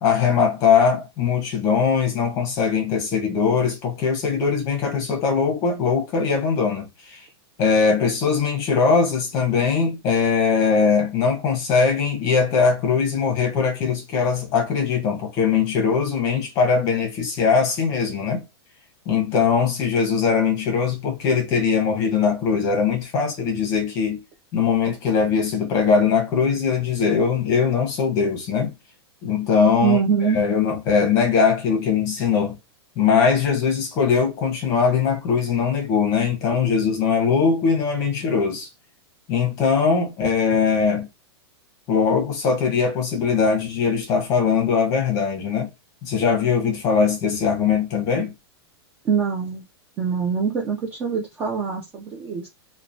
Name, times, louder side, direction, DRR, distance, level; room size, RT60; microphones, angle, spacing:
voice 1, 0.0-7.2 7.6-18.4 19.1-24.2 24.5-28.7 29.2-30.0 30.3-32.6 33.0-38.7 39.3-41.1 41.9-45.7 46.0-48.3, left 6 dB, 25° left, 0.8 m, -21 dB
voice 2, 29.8-30.4 49.0-49.6 50.0-52.5, right 6 dB, 10° right, 0.3 m, -23 dB
3.0 x 2.1 x 2.5 m
supercardioid pair, 175°, 14 cm